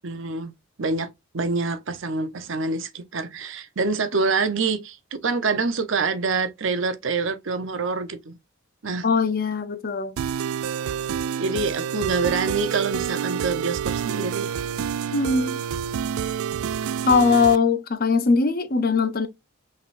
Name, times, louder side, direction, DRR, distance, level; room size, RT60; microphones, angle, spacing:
voice 1, 0.0-0.5 0.8-8.4 8.8-9.1 11.4-14.5, right 4 dB, 60° right, 0.7 m, -26 dB
voice 2, 9.0-10.2 15.1-15.6 17.1-19.3, left 4 dB, 45° left, 0.7 m, -20 dB
sound 1, 10.2-17.6, right 8 dB, 85° right, 0.3 m, -28 dB
5.7 x 3.3 x 2.5 m
head